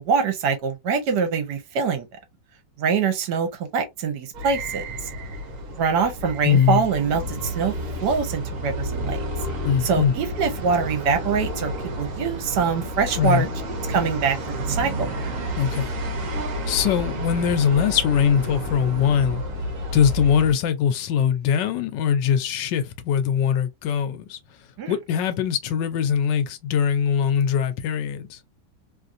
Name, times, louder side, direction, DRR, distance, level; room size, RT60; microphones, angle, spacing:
voice 1, 0.0-2.1 2.8-4.8 5.8-7.7 8.0-9.2 9.8-11.7 12.0-13.5 13.9-15.1 24.8-24.9, right 5 dB, 70° right, 1.3 m, -24 dB
sound 1, 4.3-20.5, equal, 55° right, 1.2 m, -30 dB
voice 2, 6.4-6.8 9.6-10.1 13.2-13.5 15.6-15.9 16.7-19.4 19.9-24.4 24.9-28.4, left 8 dB, 85° left, 1.3 m, -21 dB
3.1 x 2.5 x 2.5 m
omnidirectional pair, 1.9 m